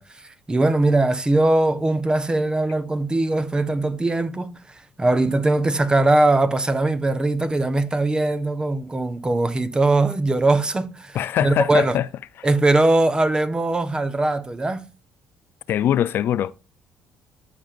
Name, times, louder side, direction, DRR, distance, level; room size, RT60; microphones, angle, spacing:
voice 1, 0.0-11.2 11.4-12.0 12.4-14.9, right 2 dB, 20° right, 0.9 m, -21 dB
voice 2, 11.1-12.1 12.4-12.5 15.7-16.5, left 11 dB, 65° left, 0.4 m, -22 dB
13.0 x 5.2 x 2.4 m
supercardioid pair, 75°, 4 cm